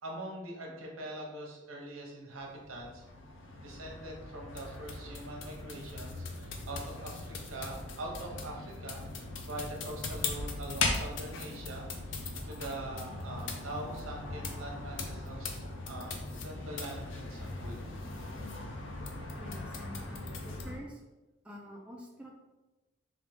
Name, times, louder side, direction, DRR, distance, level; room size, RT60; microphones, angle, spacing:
voice 1, 0.0-3.0 3.6-17.8, right 1 dB, 90° right, 0 dB, 0.8 m, -43 dB
sound 1, 2.3-20.8, left 3 dB, 65° left, 0.5 m, -39 dB
voice 2, 19.4-21.0 21.4-22.3, equal, 5° right, -2 dB, 0.4 m, -47 dB
3.4 x 2.4 x 3.4 m, 1.1 s
head